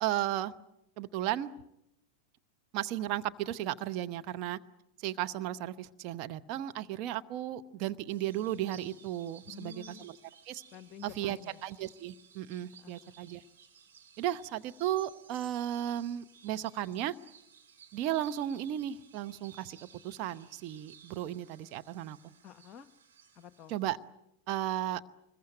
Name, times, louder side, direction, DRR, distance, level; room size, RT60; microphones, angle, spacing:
voice 1, 0.0-0.5 1.0-1.5 2.7-4.6 5.0-10.2 10.5-10.6 11.0-13.4 14.2-17.1 17.9-19.8 20.0-22.2 23.7-24.0 24.5-25.0, right 12 dB, 40° right, 9 dB, 0.9 m, -35 dB
sound 1, 8.1-24.0, right 7 dB, 65° right, 5.2 m, -57 dB
voice 2, 9.5-10.1 10.7-11.6 12.8-13.1 22.4-22.9 23.3-23.7, left 8 dB, 35° left, 15 dB, 1.0 m, -50 dB
25.5 x 22.0 x 9.1 m, 0.83 s
figure-of-eight pair, 90°, 0 cm